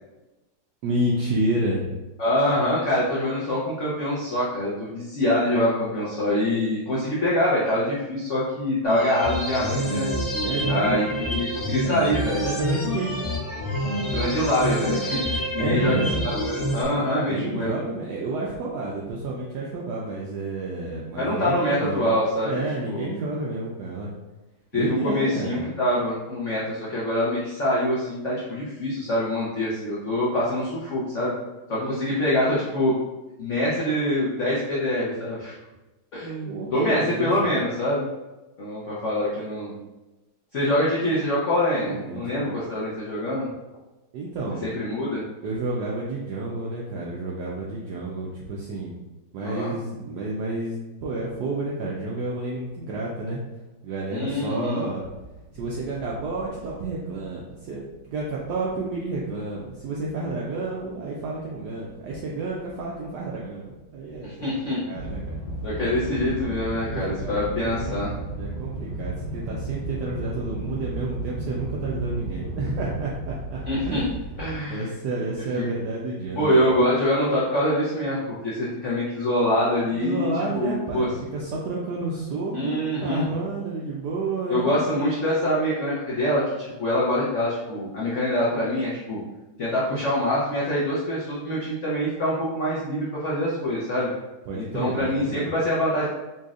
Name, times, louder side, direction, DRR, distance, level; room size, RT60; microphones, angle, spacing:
voice 1, 0.8-1.9 10.4-11.1 11.7-11.8 12.4-13.2 15.6-16.2 16.9-22.1 22.4-24.1 24.7-25.6 36.4-37.5 41.9-42.6 44.1-44.7 45.4-49.0 49.3-53.4 53.8-55.0 55.5-64.3 64.7-65.4 66.8-68.0 68.4-73.6 73.9-74.2 74.7-76.8 79.9-84.8 94.5-95.5, right 2 dB, 80° right, -3 dB, 0.9 m, -30 dB
voice 2, 2.2-10.1 10.7-11.1 11.3-12.5 14.0-15.9 16.2-17.7 21.2-22.5 22.9-23.1 24.7-31.3 31.7-32.9 33.4-35.5 36.1-38.1 38.6-39.7 40.5-43.5 44.6-45.2 49.4-49.7 54.1-54.8 64.2-64.8 65.6-68.1 73.7-74.0 74.4-74.9 76.4-80.3 80.5-81.1 82.5-83.3 84.5-89.2 89.6-94.1 94.5-96.1, left 1 dB, 75° left, -7 dB, 0.6 m, -25 dB
sound 1, 8.8-16.8, equal, 50° left, 1.0 m, -27 dB
sound 2, 55.0-57.7 57.9-60.4 60.7-63.8 64.1-74.5, right 1 dB, 25° left, 1.5 m, -35 dB
4.1 x 3.0 x 2.4 m, 1.1 s
omnidirectional pair, 2.3 m